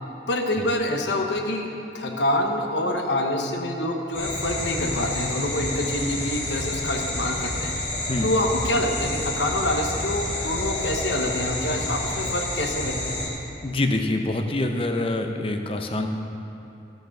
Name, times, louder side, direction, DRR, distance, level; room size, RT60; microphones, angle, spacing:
voice 1, 0.3-1.7 1.9-7.7 8.2-13.1, left 1 dB, 85° left, 3 dB, 1.0 m, -26 dB
sound 1, 4.1-13.3, left 1 dB, 50° left, 2.5 m, -29 dB
voice 2, 13.6-16.1, left 2 dB, 30° left, 5 dB, 0.6 m, -25 dB
13.5 x 5.2 x 6.0 m, 2.7 s
head